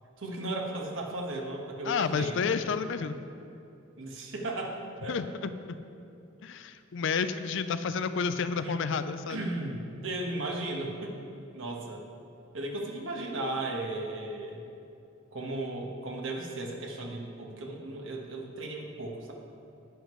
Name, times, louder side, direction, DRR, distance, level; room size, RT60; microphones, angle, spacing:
voice 1, 0.2-2.4 4.0-5.2 8.5-8.7 9.3-11.2 11.5-12.0 12.5-14.6 15.3-19.3, right 2 dB, 75° right, 0 dB, 1.3 m, -35 dB
voice 2, 1.9-3.2 5.1-5.8 6.4-9.4, left 5 dB, 65° left, 11 dB, 0.4 m, -30 dB
10.0 x 9.5 x 3.1 m, 2.7 s
head